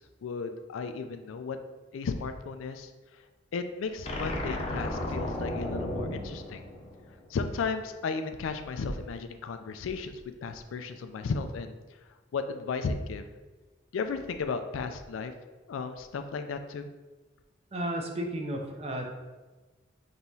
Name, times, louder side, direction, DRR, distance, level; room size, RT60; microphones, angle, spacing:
voice 1, 0.0-1.6 1.9-3.2 3.5-6.6 7.3-11.8 12.3-13.3 13.9-16.9, left 4 dB, 85° left, 8 dB, 0.4 m, -35 dB
sound 1, 4.0-7.4, left 1 dB, 30° left, 0.5 m, -34 dB
voice 2, 17.7-19.0, right 1 dB, 30° right, 2 dB, 0.6 m, -33 dB
5.4 x 3.0 x 2.7 m, 1.2 s
head